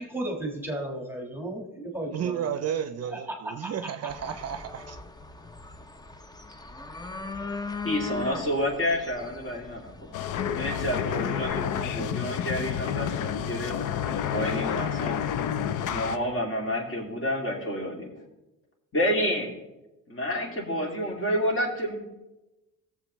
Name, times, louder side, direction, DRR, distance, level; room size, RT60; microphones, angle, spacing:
voice 1, 0.0-2.5 3.1-3.7, right 1 dB, 5° right, 1 dB, 1.5 m, -34 dB
voice 2, 2.1-5.0, right 8 dB, 50° right, 10 dB, 0.6 m, -32 dB
sound 1, 4.1-11.5, left 4 dB, 10° left, 0.6 m, -40 dB
voice 3, 7.8-10.1 10.5-13.7 14.3-15.2 15.9-18.1 18.9-19.5 20.1-22.0, equal, 40° left, -1 dB, 2.6 m, -29 dB
sound 2, 10.1-16.2, left 9 dB, 65° left, 0.6 m, -29 dB
16.5 x 7.2 x 3.1 m, 1.0 s
cardioid pair, 110°, 34 cm